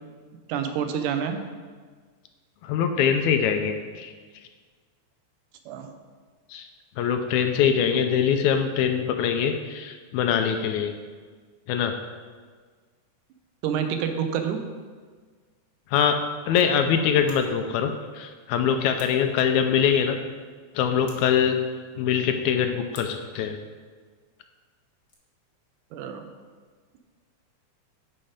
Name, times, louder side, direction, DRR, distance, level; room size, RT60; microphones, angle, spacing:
voice 1, 0.5-1.4 5.7-5.9 13.6-14.6 25.9-26.3, right 8 dB, 90° right, 7 dB, 2.3 m, -27 dB
voice 2, 2.7-4.1 6.5-6.7 7.0-11.0 11.7-11.9 15.9-16.2 16.5-20.2 20.8-21.6 22.0-23.6, left 8 dB, 80° left, 7 dB, 1.9 m, -23 dB
Scissors, 17.1-17.5 18.9-19.3 21.0-21.4 22.9-23.3 24.9-25.1, left 2 dB, 50° left, 1.0 m, -50 dB
11.5 x 4.4 x 5.0 m, 1.5 s
omnidirectional pair, 3.5 m